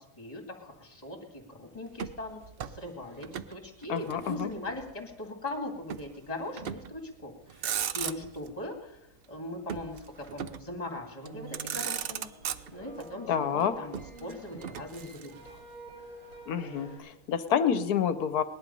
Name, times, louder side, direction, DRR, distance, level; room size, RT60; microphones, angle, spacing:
voice 1, 0.0-7.6 7.9-9.0 9.3-10.0 10.3-12.3 12.7-15.6 16.6-16.9, left 1 dB, 25° left, 3 dB, 2.3 m, -40 dB
Motor vehicle (road), 1.9-3.6 3.8-4.9 5.9-6.1 6.6-7.0 7.4-8.5 9.7-10.7 11.3-11.4 11.5-13.0 13.9-15.6, right 9 dB, 90° right, 0.5 m, -37 dB
voice 2, 3.9-4.5 13.3-13.7 16.5-18.4, left 8 dB, 70° left, 11 dB, 1.3 m, -28 dB
sound 1, 11.2-17.0, right 3 dB, 70° right, 6.4 m, -48 dB
19.5 x 11.0 x 5.4 m, 0.95 s
omnidirectional pair, 1.7 m